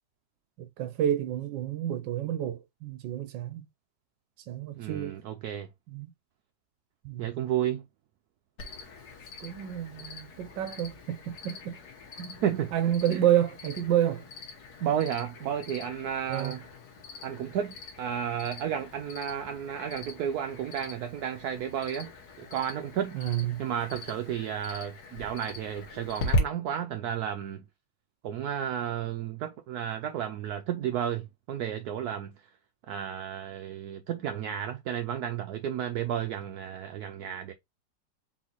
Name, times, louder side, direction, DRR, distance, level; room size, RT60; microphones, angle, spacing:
voice 1, 0.6-3.7 4.5-5.2 5.9-6.1 7.0-7.4 9.4-11.8 12.2-12.4 12.7-14.2 16.3-16.5 23.1-23.6, right 11 dB, 90° right, 1.3 m, -29 dB
voice 2, 4.8-5.7 7.2-7.8 12.4-13.2 14.8-16.6 17.2-22.1 22.4-23.2 23.6-27.6 28.2-32.3 32.9-37.5, right 9 dB, 70° right, 1.0 m, -32 dB
Cricket, 8.6-26.4, left 2 dB, 60° left, 1.6 m, -40 dB
4.2 x 4.1 x 2.9 m
omnidirectional pair, 1.9 m